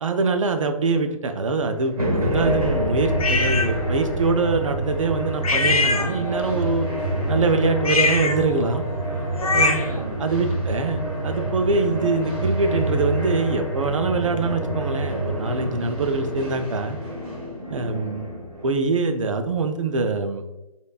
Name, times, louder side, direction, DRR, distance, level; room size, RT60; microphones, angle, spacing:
voice 1, 0.0-6.9 7.3-8.8 9.5-17.0 17.7-18.3 18.6-20.4, right 3 dB, 60° right, 7 dB, 0.4 m, -24 dB
reverbed movement, 1.7-17.5, right 1 dB, 5° right, 0.5 m, -28 dB
sound 1, 2.0-8.5 13.8-18.7, equal, 90° right, 0.9 m, -31 dB
sound 2, 3.2-3.7 5.4-6.5 7.8-10.0, left 3 dB, 70° left, 0.5 m, -23 dB
3.5 x 2.5 x 2.3 m, 0.96 s
figure-of-eight pair, 140°, 19 cm